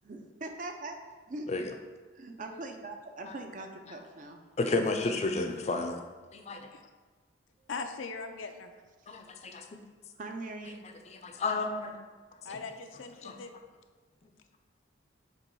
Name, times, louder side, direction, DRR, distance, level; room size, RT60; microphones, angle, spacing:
voice 1, 0.0-1.0 1.3-1.5 2.1-4.4 10.2-10.8, right 2 dB, 40° right, 5 dB, 0.5 m, -41 dB
voice 2, 4.6-6.0 6.3-6.6 9.1-9.8 11.1-12.0 12.5-12.6 13.2-13.3, left 3 dB, 35° left, 5 dB, 0.5 m, -32 dB
voice 3, 7.7-8.7 12.4-13.5, left 4 dB, 80° left, 6 dB, 0.5 m, -40 dB
6.9 x 3.0 x 4.6 m, 1.4 s
head